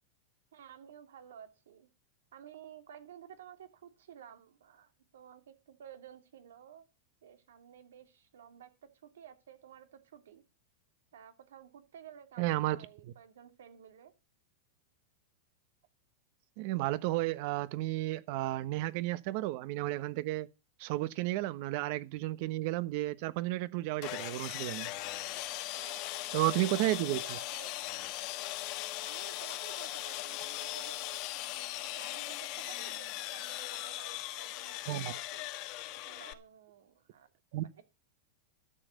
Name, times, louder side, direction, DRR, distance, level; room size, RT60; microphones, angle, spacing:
voice 1, 0.5-1.9 2.3-6.8 7.2-8.7 9.0-10.4 11.1-14.1 25.7-26.2 26.5-26.7 27.1-27.8 29.0-35.4 36.0-37.3, right 9 dB, 90° right, 2.7 m, -53 dB
voice 2, 12.4-12.8 13.0-13.1 16.6-20.5 20.8-24.9 26.3-27.4 34.9-35.1 37.5-37.6, right 17 dB, 55° right, 1.1 m, -32 dB
Sawing, 24.0-36.3, left 16 dB, 45° left, 1.3 m, -39 dB
13.0 x 7.2 x 6.6 m
supercardioid pair, 145°, 0 cm